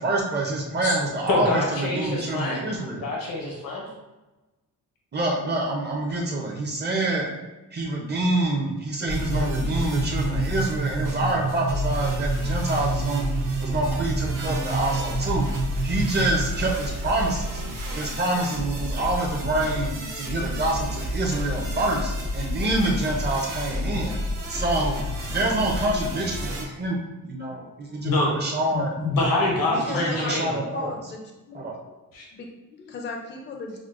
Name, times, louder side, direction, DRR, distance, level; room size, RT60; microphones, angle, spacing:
voice 1, 0.0-3.0 5.1-7.3 7.7-13.3 13.6-15.5 15.8-17.6 17.9-19.9 20.2-24.2 24.5-25.0 25.3-26.9 27.2-29.0 29.9-30.9 31.5-31.8, right 2 dB, 30° right, -1 dB, 0.6 m, -26 dB
voice 2, 1.3-2.7 3.0-3.9 28.0-28.3 28.7-30.6 32.1-32.3, left 2 dB, 85° left, -3 dB, 0.9 m, -25 dB
sound 1, 9.1-26.6, left 1 dB, 75° right, 0.9 m, -30 dB
sound 2, 9.1-16.7, right 6 dB, 90° right, 0.5 m, -30 dB
voice 3, 29.7-31.6 32.3-33.8, left 3 dB, 35° left, 2 dB, 0.4 m, -36 dB
6.2 x 2.1 x 2.4 m, 1.1 s
wide cardioid pair, 165°, 33 cm